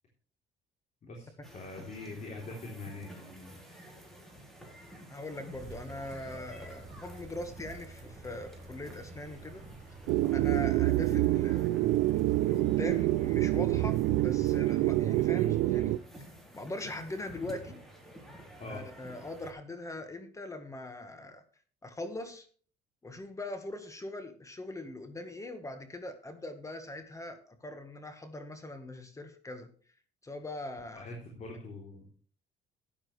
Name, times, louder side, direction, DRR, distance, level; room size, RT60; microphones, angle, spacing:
voice 1, 1.0-3.6 18.6-18.8 30.9-32.1, left 2 dB, 45° left, 0 dB, 3.5 m, -43 dB
sound 1, 1.4-19.5, equal, ahead, 3.8 m, -50 dB
voice 2, 5.1-9.6 10.3-11.7 12.1-16.0 16.5-17.8 18.7-21.4 21.8-22.5 23.0-29.7 30.2-31.1, left 2 dB, 20° left, 8 dB, 1.6 m, -41 dB
sound 2, 5.5-15.3, right 3 dB, 45° right, 5.1 m, -49 dB
sound 3, 10.1-16.0, right 17 dB, 90° right, 0.4 m, -27 dB
13.0 x 10.0 x 3.3 m, 0.43 s
cardioid pair, 110°, 17 cm